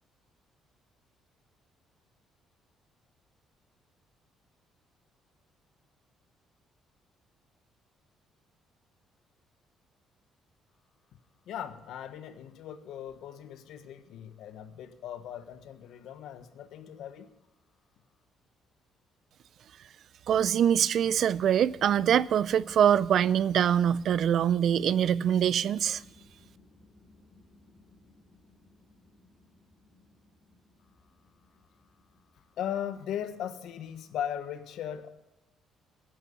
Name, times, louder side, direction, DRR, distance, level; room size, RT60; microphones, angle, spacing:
voice 1, 11.5-17.3 32.6-35.1, left 10 dB, 75° left, 1.3 m, -38 dB
voice 2, 20.3-26.0, right 9 dB, 60° right, 0.5 m, -24 dB
sound 1, 21.0-33.1, left 2 dB, 15° left, 4.1 m, -58 dB
16.5 x 10.5 x 5.4 m
cardioid pair, 115°, 0 cm